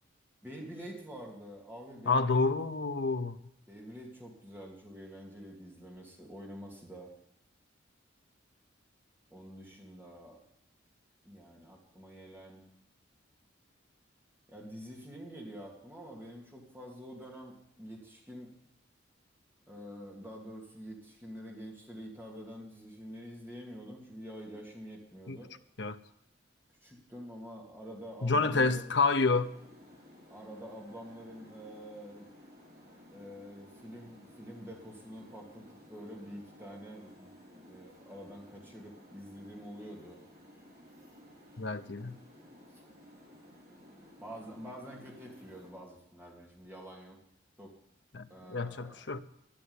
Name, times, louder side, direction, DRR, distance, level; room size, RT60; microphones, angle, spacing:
voice 1, 0.4-2.5 3.7-7.1 9.3-10.4 11.2-12.7 14.5-18.5 19.6-25.5 26.8-28.9 30.3-32.3 33.1-37.3 37.5-40.2 42.7-42.8 44.2-47.2 47.6-47.7 48.3-49.0, equal, 10° right, 2.6 m, -47 dB
voice 2, 2.1-3.4 25.3-25.4 25.8-26.0 28.2-29.5 41.6-42.2 48.1-49.2, left 3 dB, 60° left, 0.7 m, -29 dB
sound 1, 28.9-45.7, equal, 50° right, 4.3 m, -56 dB
13.0 x 6.8 x 9.8 m
head